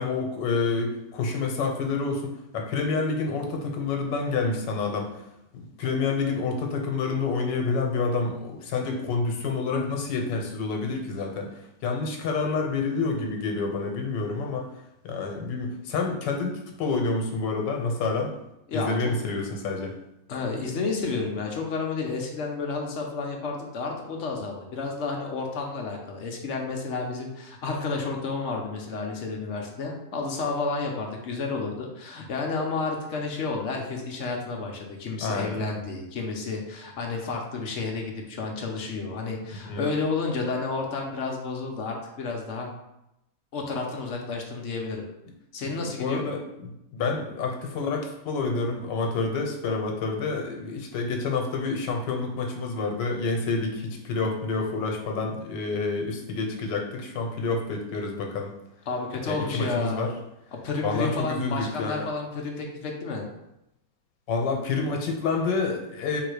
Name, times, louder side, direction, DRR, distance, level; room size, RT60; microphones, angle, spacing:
voice 1, 0.0-5.1 5.5-11.5 11.8-14.7 15.0-18.3 18.7-20.0 35.2-35.8 39.7-39.8 45.6-58.5 59.3-60.1 60.8-62.0 64.3-66.2, left 4 dB, 85° left, 2 dB, 1.5 m, -28 dB
voice 2, 18.7-19.1 20.3-42.7 43.5-45.1 45.5-46.3 58.9-60.1 60.5-63.3, left 4 dB, 55° left, 1 dB, 0.8 m, -31 dB
3.8 x 2.8 x 4.8 m, 0.87 s
omnidirectional pair, 1.9 m